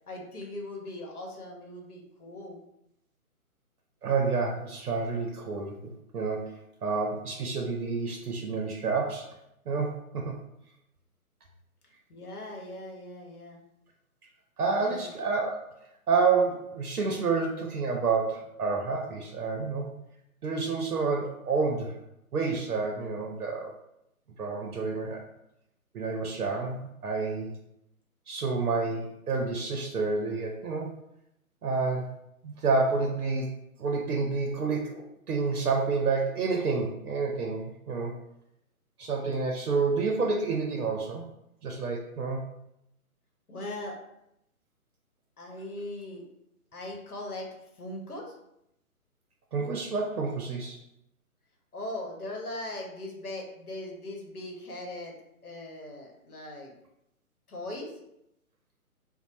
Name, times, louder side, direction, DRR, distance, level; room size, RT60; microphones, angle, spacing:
voice 1, 0.1-2.6 12.1-13.6 14.7-15.1 43.5-44.0 45.4-46.2 46.7-47.5 47.8-48.4 51.7-55.2 55.4-56.7 57.5-57.9, left 1 dB, 85° left, 0 dB, 0.9 m, -39 dB
voice 2, 4.0-9.3 9.7-10.4 14.6-15.6 16.1-19.9 20.4-22.0 22.3-23.7 24.4-25.2 25.9-27.6 28.3-30.9 31.6-32.1 32.4-33.5 33.8-38.1 39.0-41.2 41.6-42.4 49.5-50.8, right 4 dB, 90° right, 1 dB, 0.6 m, -29 dB
2.6 x 2.0 x 3.0 m, 0.82 s
figure-of-eight pair, 140°, 44 cm